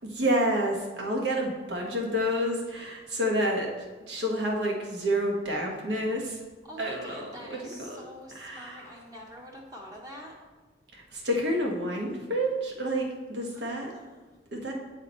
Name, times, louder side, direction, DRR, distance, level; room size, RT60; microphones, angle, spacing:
voice 1, 0.0-3.7 4.1-6.4 6.8-8.1 8.3-8.9 10.9-13.9 14.5-14.7, equal, 75° right, 0 dB, 1.3 m, -29 dB
voice 2, 6.6-10.4 13.5-14.3, equal, 20° right, -2 dB, 0.9 m, -46 dB
8.2 x 4.9 x 4.3 m, 1.3 s
head